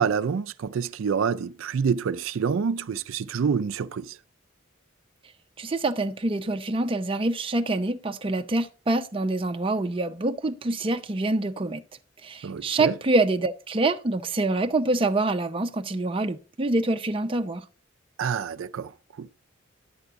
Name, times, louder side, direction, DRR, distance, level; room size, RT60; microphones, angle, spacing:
voice 1, 0.0-4.2 12.4-13.0 18.2-18.9 19.2-19.3, right 6 dB, 85° right, 0.4 m, -27 dB
voice 2, 5.6-11.8 12.2-17.6, right 2 dB, 25° right, 0.5 m, -26 dB
11.0 x 8.0 x 3.6 m
head